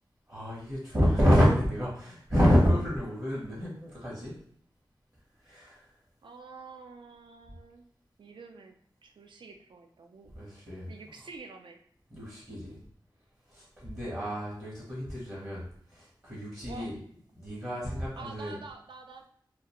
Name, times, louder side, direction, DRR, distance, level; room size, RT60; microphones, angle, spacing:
voice 1, 0.3-4.3 5.4-5.9 10.3-10.9 12.1-12.8 13.5-15.6 15.9-17.0 17.3-18.6, equal, 35° right, -7 dB, 0.8 m, -28 dB
voice 2, 6.2-7.8 8.2-8.7 9.0-10.3 10.9-11.8 16.6-16.9 18.2-19.3, right 4 dB, 75° right, 4 dB, 0.4 m, -47 dB
2.3 x 2.1 x 2.9 m, 0.64 s
wide cardioid pair, 95°, 8 cm